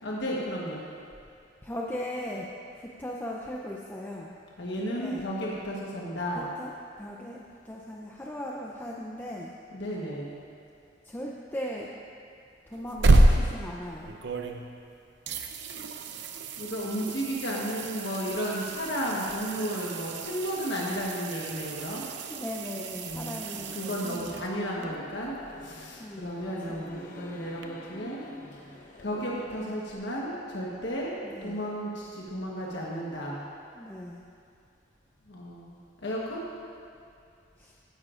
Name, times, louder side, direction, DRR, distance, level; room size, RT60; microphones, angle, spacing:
voice 1, 0.0-0.8 4.6-6.5 9.7-10.4 16.6-22.0 23.0-23.4 23.7-25.3 25.6-28.2 29.0-31.1 31.4-33.5 35.3-35.7 36.0-36.4, equal, 65° left, -4 dB, 1.2 m, -33 dB
voice 2, 1.6-2.5 2.8-4.4 4.8-5.3 6.3-6.7 7.0-9.5 11.0-11.9 12.7-14.2 22.3-25.0 26.0-26.3 26.7-27.2 31.2-31.6 33.7-34.2 37.6-37.7, left 1 dB, 10° left, -3 dB, 0.5 m, -38 dB
sound 1, 12.7-14.9 15.3-24.8 27.6-27.7, right 2 dB, 65° right, 0.6 m, -29 dB
sound 2, 24.6-29.8, left 2 dB, 45° left, 0.9 m, -48 dB
16.0 x 9.9 x 2.5 m, 2.5 s
head